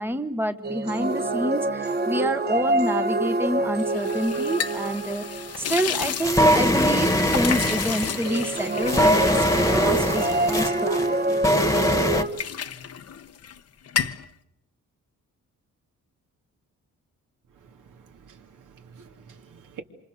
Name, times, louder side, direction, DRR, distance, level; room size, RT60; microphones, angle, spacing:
voice 1, 0.0-5.2 5.6-11.4, right 1 dB, 5° right, 1.1 m, -28 dB
sound 1, 0.6-5.7 8.2-12.3, right 2 dB, 30° right, 1.1 m, -26 dB
sound 2, 3.8-11.6 11.9-13.6 13.8-14.3, left 8 dB, 50° left, 0.9 m, -33 dB
sound 3, 5.5-12.2, equal, 10° left, 1.5 m, -22 dB
voice 2, 17.7-19.8, right 5 dB, 75° right, 2.9 m, -47 dB
27.0 x 27.0 x 6.7 m
wide cardioid pair, 170°, 31 cm